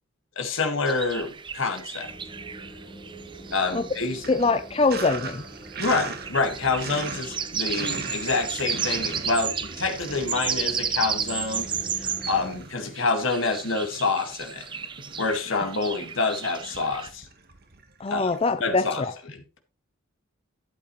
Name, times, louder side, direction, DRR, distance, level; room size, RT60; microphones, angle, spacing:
voice 1, 0.4-2.1 3.5-4.3 5.8-11.7 12.0-14.7 15.2-17.3 18.1-18.3 18.6-19.1 19.3-19.4, left 3 dB, 70° left, 1.9 m, -27 dB
sound 1, 0.9-12.5 13.0-17.1, right 7 dB, 25° right, 0.7 m, -33 dB
Sink (filling or washing), 1.1-2.0 2.3-18.4, right 4 dB, 50° right, 1.3 m, -41 dB
sound 2, 2.0-12.6, right 1 dB, 10° left, 1.3 m, -44 dB
voice 2, 4.3-5.4 18.0-19.1, left 3 dB, 25° left, 0.5 m, -23 dB
12.0 x 8.4 x 3.1 m
head